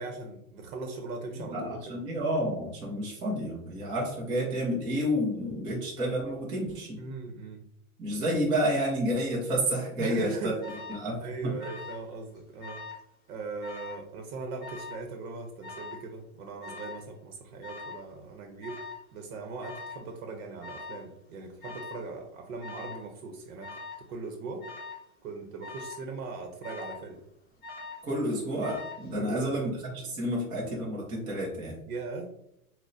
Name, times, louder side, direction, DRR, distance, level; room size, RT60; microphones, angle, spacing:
voice 1, 0.0-2.0 7.0-7.6 10.0-10.6 11.2-12.8 13.3-18.8 19.1-24.7 25.2-27.2 29.2-29.7 31.9-32.3, right 3 dB, 75° right, 3 dB, 0.8 m, -39 dB
voice 2, 1.3-7.0 8.0-10.5 10.9-11.5 28.0-31.7, equal, 10° right, -4 dB, 0.4 m, -30 dB
Alarm, 10.6-11.0 11.6-12.1 12.4-13.0 13.6-14.0 14.6-15.1 15.6-16.1 16.6-17.1 17.6-18.0 18.6-19.0 19.6-20.0 20.6-21.1 21.6-22.1 22.6-23.0 23.6-24.0 24.6-25.1 25.6-26.0 26.6-27.1 27.6-28.1 28.6-29.1, left 3 dB, 20° left, 0.8 m, -42 dB
6.2 x 2.1 x 2.5 m, 0.80 s
supercardioid pair, 150°, 42 cm